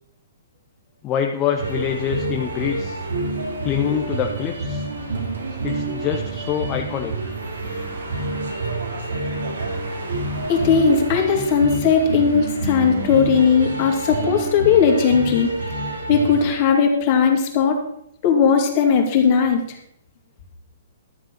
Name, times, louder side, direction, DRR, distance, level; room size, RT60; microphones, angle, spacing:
voice 1, 1.0-3.0 3.6-4.8 5.6-7.1, left 9 dB, 25° left, 3 dB, 1.2 m, -25 dB
sound 1, 1.6-16.5, right 2 dB, 85° right, 3.9 m, -28 dB
voice 2, 10.5-15.5 16.1-17.8 18.2-19.6, left 6 dB, 40° left, 2 dB, 3.1 m, -17 dB
13.0 x 7.6 x 6.0 m, 0.73 s
hypercardioid pair, 140°, 0 cm